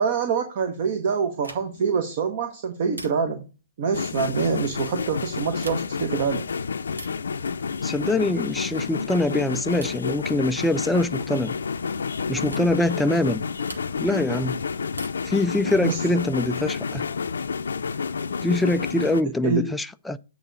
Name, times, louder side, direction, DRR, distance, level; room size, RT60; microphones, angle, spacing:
voice 1, 0.0-3.4 3.8-6.5 15.8-16.0 19.4-19.7, right 6 dB, 45° right, 1.1 m, -25 dB
sound 1, 1.4-1.9 2.9-3.5 5.5-6.1 6.9-7.3 8.6-8.9 9.8-10.1 11.4-11.7 12.5-12.7 13.6-14.2 14.9-15.4 16.9-17.6, right 1 dB, 85° right, 1.2 m, -43 dB
sound 2, 3.9-19.2, left 5 dB, 70° left, 0.5 m, -30 dB
voice 2, 7.8-11.5 12.3-13.4 14.0-14.6 15.3-17.0 18.4-20.2, left 1 dB, 5° left, 0.3 m, -24 dB
8.6 x 3.5 x 6.7 m
figure-of-eight pair, 120°, 0 cm